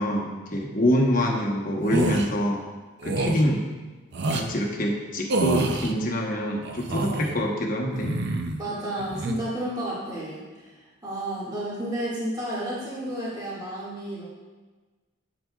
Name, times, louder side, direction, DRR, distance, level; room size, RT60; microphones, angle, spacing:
voice 1, 0.0-2.6 3.0-3.6 4.3-8.2, equal, 45° left, 0 dB, 1.0 m, -25 dB
sound 1, 1.8-2.3 3.0-3.4 4.1-4.5 5.3-5.9 6.6-7.3 7.9-8.6 9.0-9.4, right 2 dB, 55° right, 0.5 m, -27 dB
voice 2, 8.6-10.7 11.0-14.3, right 1 dB, 20° right, -8 dB, 1.8 m, -31 dB
8.4 x 7.7 x 2.3 m, 1.3 s
head